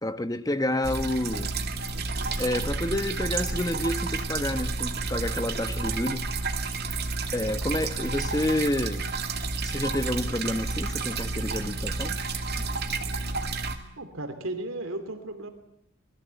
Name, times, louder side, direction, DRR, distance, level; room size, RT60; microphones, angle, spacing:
voice 1, 0.0-1.6 2.4-6.3 7.3-9.1 9.6-12.2, left 1 dB, 20° left, 1.2 m, -29 dB
sound 1, 0.8-13.8, right 3 dB, 50° right, 2.4 m, -30 dB
voice 2, 14.0-15.5, right 2 dB, 70° right, 3.1 m, -35 dB
27.0 x 21.5 x 8.3 m
head